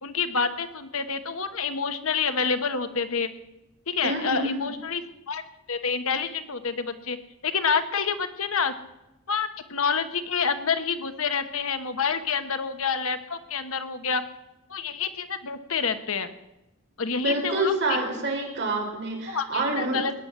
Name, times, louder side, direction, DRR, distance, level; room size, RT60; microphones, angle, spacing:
voice 1, 0.0-3.3 3.9-5.4 5.7-7.2 7.4-8.7 9.3-14.2 14.7-16.3 17.0-18.0 19.3-20.1, left 5 dB, 65° left, 9 dB, 1.3 m, -28 dB
voice 2, 4.0-4.7 17.2-20.0, right 2 dB, 50° right, 1 dB, 4.4 m, -27 dB
19.0 x 9.8 x 7.5 m, 0.90 s
head